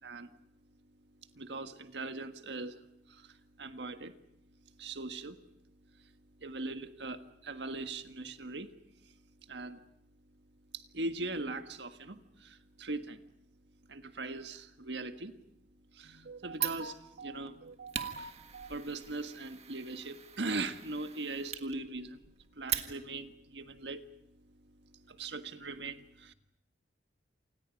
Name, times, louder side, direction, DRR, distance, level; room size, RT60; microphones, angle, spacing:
voice 1, 0.0-0.3 1.3-2.8 3.1-4.2 4.8-5.4 6.4-8.7 9.5-9.8 10.7-13.2 13.9-15.4 15.9-22.2 22.5-24.0 25.1-26.3, right 3 dB, 75° right, 8 dB, 1.6 m, -40 dB
Fire, 16.5-23.3, right 9 dB, 35° right, 1.7 m, -41 dB
28.5 x 28.0 x 5.3 m, 0.81 s
head